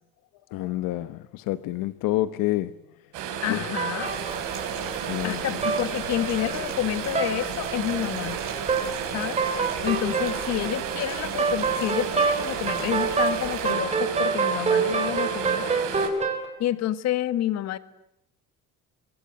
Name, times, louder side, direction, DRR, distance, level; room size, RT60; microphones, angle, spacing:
voice 1, 0.5-2.7 3.5-3.6 5.1-5.4, left 16 dB, 80° left, 1.1 m, -28 dB
sound 1, 3.1-16.1, right 7 dB, 65° right, 5.9 m, -32 dB
voice 2, 3.4-4.1 5.2-8.5 9.1-9.4 9.8-15.8 16.2-16.3 16.6-17.8, left 13 dB, 50° left, 1.7 m, -29 dB
sound 2, 3.8-5.3 5.6-5.8 6.1-6.6 7.1-7.3 7.7-8.2 8.7-8.9 9.2-16.5, right 5 dB, 20° right, 4.1 m, -26 dB
sound 3, 4.0-13.7, right 7 dB, 40° right, 7.4 m, -40 dB
25.0 x 24.5 x 9.1 m
cardioid pair, 180°, 33 cm